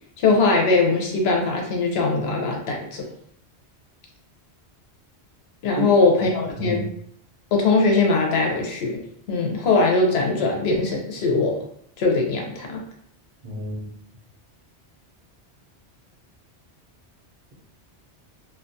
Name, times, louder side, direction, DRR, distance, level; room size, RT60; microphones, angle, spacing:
voice 1, 0.2-3.0 5.6-6.9 7.5-9.0 9.3-11.6 12.0-12.8, left 3 dB, 70° left, 1 dB, 0.8 m, -21 dB
voice 2, 13.4-14.0, right 2 dB, 45° right, -5 dB, 0.6 m, -29 dB
2.3 x 2.2 x 2.6 m, 0.65 s
omnidirectional pair, 1.1 m